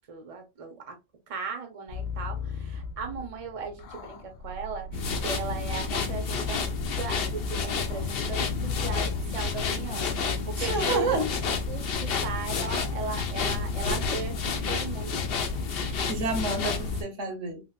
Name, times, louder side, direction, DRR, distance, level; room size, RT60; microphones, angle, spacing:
voice 1, 0.1-1.0 1.3-11.2 11.7-15.2 15.5-16.1, right 5 dB, 35° right, 0.7 m, -37 dB
sound 1, 1.9-9.7, left 5 dB, 90° left, 1.0 m, -38 dB
sound 2, 4.9-17.0, left 5 dB, 55° left, 0.8 m, -30 dB
voice 2, 10.6-11.3 16.0-17.6, right 2 dB, 75° right, 1.3 m, -30 dB
3.3 x 2.9 x 2.4 m
omnidirectional pair, 1.3 m